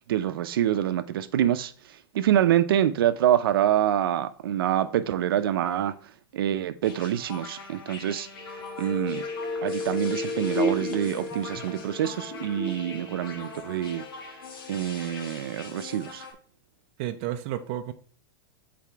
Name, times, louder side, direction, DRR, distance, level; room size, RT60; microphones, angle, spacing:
voice 1, 0.1-1.7 2.1-6.0 6.3-8.3 8.8-9.2 9.6-14.0 14.7-16.3, right 11 dB, 85° right, 0.5 m, -26 dB
sound 1, 6.8-16.3, left 3 dB, 80° left, 1.4 m, -42 dB
sound 2, 8.4-14.1 14.4-14.5, left 1 dB, 10° left, 0.8 m, -33 dB
voice 2, 17.0-17.9, right 12 dB, 35° right, 0.5 m, -31 dB
7.5 x 4.2 x 3.5 m
supercardioid pair, 175°, 12 cm